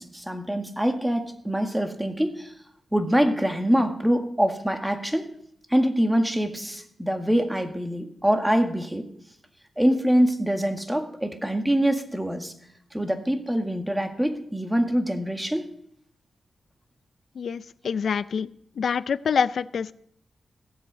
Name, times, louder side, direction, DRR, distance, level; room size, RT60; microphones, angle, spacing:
voice 1, 0.0-2.5 2.9-5.3 5.7-9.1 9.8-12.5 12.9-15.7, equal, 5° right, 6 dB, 1.9 m, -24 dB
voice 2, 17.4-18.5 18.8-19.9, left 6 dB, 75° left, 16 dB, 0.5 m, -26 dB
17.0 x 8.0 x 6.3 m, 0.69 s
cardioid pair, 80°, 0 cm